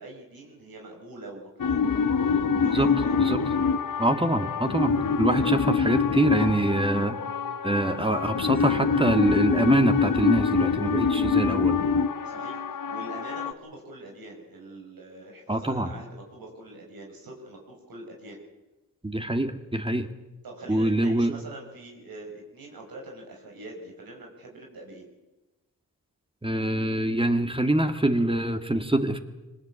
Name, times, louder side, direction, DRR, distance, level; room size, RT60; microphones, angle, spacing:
voice 1, 0.0-1.9 2.5-3.3 5.2-5.5 12.2-18.4 20.4-25.1, right 2 dB, 80° right, 0 dB, 5.5 m, -44 dB
sound 1, 1.6-13.5, left 5 dB, 65° left, 1.3 m, -25 dB
voice 2, 4.0-7.2 7.6-11.8 15.5-15.9 19.0-20.1 20.7-21.4 26.4-29.2, right 1 dB, 15° right, 7 dB, 2.2 m, -24 dB
23.0 x 19.5 x 8.4 m, 1.1 s
cardioid pair, 55°, 35 cm